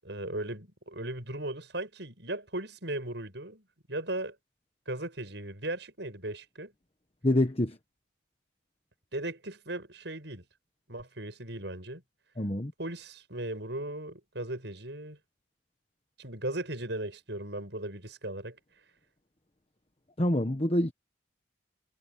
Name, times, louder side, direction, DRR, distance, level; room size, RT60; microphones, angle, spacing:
voice 1, 0.0-3.6 3.9-4.4 4.9-6.7 9.1-10.4 10.9-12.0 12.8-15.2 16.2-18.6, right 1 dB, 65° right, 7.2 m, -37 dB
voice 2, 7.2-7.8 12.4-12.7 20.2-20.9, left 1 dB, 30° left, 1.2 m, -26 dB
head